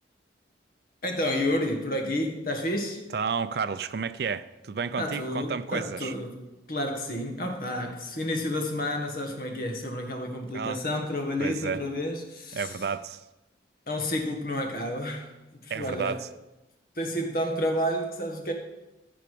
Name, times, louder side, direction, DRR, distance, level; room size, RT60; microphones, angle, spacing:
voice 1, 1.0-3.0 5.0-12.7 13.9-16.2 16.9-18.5, left 1 dB, 50° left, 3 dB, 1.6 m, -30 dB
voice 2, 3.1-6.1 10.5-10.8 11.4-11.8 12.5-13.2 15.7-16.3, right 5 dB, 55° right, 14 dB, 0.4 m, -31 dB
14.5 x 5.9 x 5.2 m, 0.99 s
head